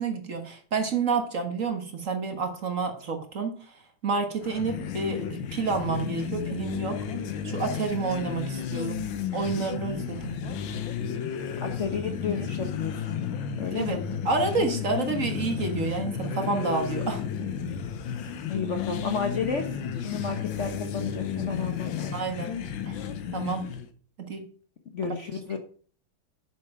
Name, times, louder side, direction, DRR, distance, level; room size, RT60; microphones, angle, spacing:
voice 1, 0.0-7.0 7.4-9.0 9.3-10.3 13.7-14.0 14.3-17.2 22.1-22.6 22.9-23.0 23.3-23.7 24.2-24.5 25.0-25.1, right 4 dB, 45° right, 5 dB, 1.7 m, -29 dB
sound 1, 4.4-23.9, left 7 dB, 85° left, 1.7 m, -33 dB
voice 2, 11.6-13.2 13.6-14.0 18.5-22.1 24.9-25.6, left 5 dB, 45° left, 5 dB, 1.1 m, -32 dB
7.8 x 6.8 x 5.8 m, 0.43 s
omnidirectional pair, 2.1 m